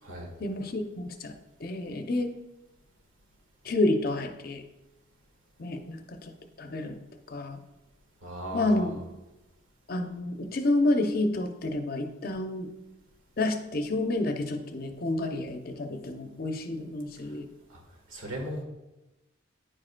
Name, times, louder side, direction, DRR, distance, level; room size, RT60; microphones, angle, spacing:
voice 1, 0.4-1.3 1.6-2.3 3.6-4.6 5.6-6.3 6.6-7.0 7.3-7.6 8.5-8.9 9.9-12.7 13.4-17.5, left 2 dB, 45° left, 5 dB, 0.5 m, -29 dB
voice 2, 8.2-9.0 17.7-17.8 18.1-18.6, right 1 dB, 85° right, 0 dB, 1.5 m, -37 dB
9.9 x 4.9 x 2.2 m, 1.0 s
head